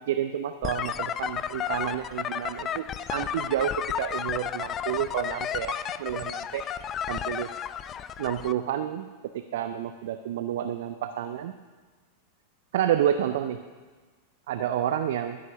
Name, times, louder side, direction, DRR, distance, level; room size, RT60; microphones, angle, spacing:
voice 1, 0.1-2.8 3.1-6.6 7.1-7.5 8.2-9.1 9.3-11.5 12.7-13.6 14.5-15.4, right 10 dB, 55° right, 10 dB, 0.5 m, -29 dB
sound 1, 0.6-8.5, left 8 dB, 30° left, 0.5 m, -33 dB
11.0 x 10.0 x 6.6 m, 1.4 s
figure-of-eight pair, 90°, 0 cm